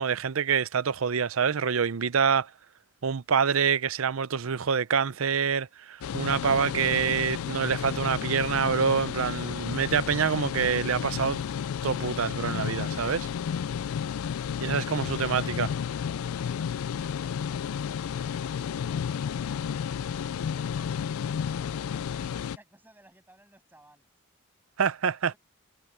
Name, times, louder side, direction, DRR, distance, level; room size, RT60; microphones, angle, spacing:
voice 1, 0.0-2.5 3.0-11.4 11.8-13.3 14.6-15.7 24.8-25.3, right 6 dB, 75° right, 0.6 m, -26 dB
sound 1, 6.0-22.6, left 7 dB, 85° left, 0.3 m, -32 dB
voice 2, 18.1-19.6 20.2-24.1 25.2-25.4, right 1 dB, 10° right, 7.3 m, -60 dB
head